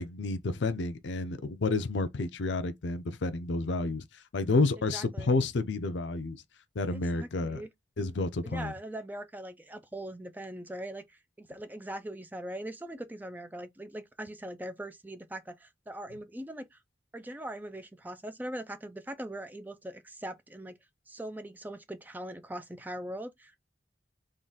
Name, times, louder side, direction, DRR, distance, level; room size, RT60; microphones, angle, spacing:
voice 1, 0.0-6.4 6.8-7.6 8.0-8.7, left 3 dB, 75° left, 0.6 m, -30 dB
voice 2, 4.9-5.4 6.9-7.7 8.4-16.8 17.1-20.8 21.1-23.6, right 1 dB, 10° right, 0.4 m, -41 dB
3.7 x 2.4 x 3.8 m
head